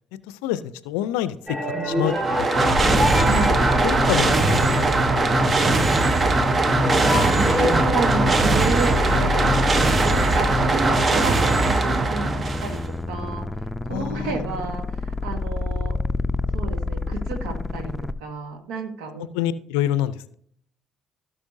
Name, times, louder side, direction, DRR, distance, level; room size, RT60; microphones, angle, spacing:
voice 1, 0.3-3.2 3.5-4.7 5.2-6.0 13.9-14.4 19.3-20.4, left 12 dB, 75° left, 16 dB, 0.4 m, -28 dB
sound 1, 1.5-5.1 6.7-9.3, equal, 15° right, 2.3 m, -27 dB
sound 2, 2.0-12.9, right 2 dB, 35° right, 0.9 m, -20 dB
sound 3, 2.7-18.1, left 2 dB, 10° left, 0.6 m, -28 dB
voice 2, 3.2-3.7 7.3-9.6 10.1-12.8 13.1-13.5 13.8-16.0 16.5-19.3, right 4 dB, 70° right, 5 dB, 1.5 m, -31 dB
16.5 x 5.7 x 2.7 m, 0.65 s
hypercardioid pair, 50°, 0 cm